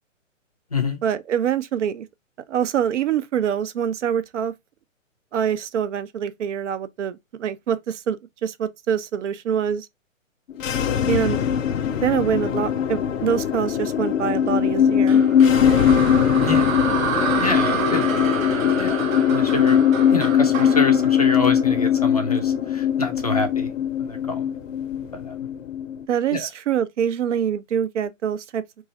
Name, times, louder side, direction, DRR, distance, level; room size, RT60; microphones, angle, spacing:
voice 1, 1.0-2.1 2.5-4.5 5.3-8.2 8.4-9.9 11.1-11.4 12.0-15.2 26.1-28.6, right 8 dB, 65° right, 0.6 m, -25 dB
sound 1, 10.5-26.0, left 8 dB, 70° left, 0.6 m, -20 dB
sound 2, 15.1-22.2, right 6 dB, 85° right, 1.0 m, -28 dB
voice 2, 16.4-16.8 17.4-18.1 18.7-19.8 20.1-23.7 24.0-24.5 25.1-25.4 26.3-26.5, left 3 dB, 30° left, 0.4 m, -27 dB
3.1 x 2.4 x 3.7 m
hypercardioid pair, 165°, 39 cm